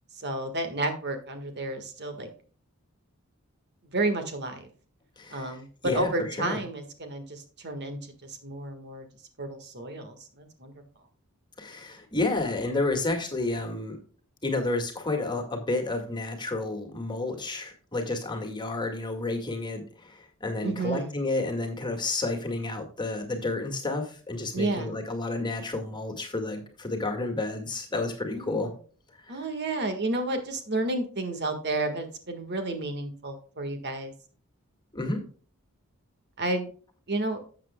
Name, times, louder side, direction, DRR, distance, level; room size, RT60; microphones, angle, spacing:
voice 1, 0.2-2.3 3.9-4.7 5.3-9.0 9.4-10.7 20.6-21.1 24.5-24.9 28.3-28.7 29.3-34.1 36.4-36.7 37.1-37.4, right 2 dB, 50° right, 7 dB, 1.6 m, -31 dB
voice 2, 5.2-5.6 5.8-6.6 11.6-14.0 14.4-28.7 29.3-29.4 34.9-35.2, left 2 dB, 20° left, 3 dB, 1.9 m, -30 dB
12.5 x 7.7 x 2.2 m, 0.41 s
head